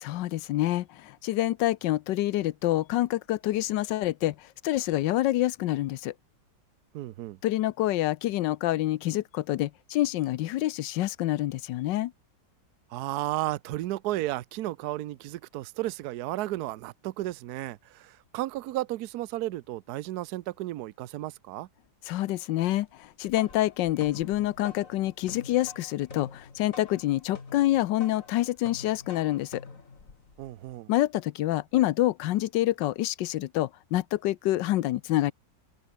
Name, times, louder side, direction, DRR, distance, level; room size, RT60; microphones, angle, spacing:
voice 1, 0.0-6.1 7.4-12.1 22.1-29.6 30.9-35.3, left 15 dB, 85° left, 1.3 m, -27 dB
voice 2, 6.9-7.4 12.9-21.7 30.4-30.9, right 16 dB, 70° right, 1.1 m, -33 dB
sound 1, 23.0-30.8, left 4 dB, 45° left, 2.9 m, -47 dB
open air
omnidirectional pair, 1.9 m